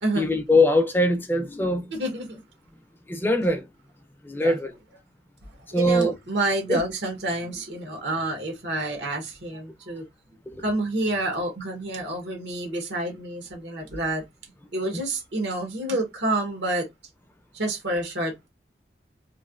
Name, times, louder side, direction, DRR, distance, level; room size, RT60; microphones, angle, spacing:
voice 1, 0.2-1.9 3.1-3.7 4.2-4.7 5.7-6.1 6.7-6.8 10.5-10.6, left 1 dB, 10° left, 0.5 m, -22 dB
voice 2, 1.9-2.4 4.3-4.6 5.7-10.0 10.6-14.2 14.7-16.9 17.5-18.5, right 1 dB, 75° right, 1.1 m, -28 dB
3.1 x 2.7 x 2.4 m
head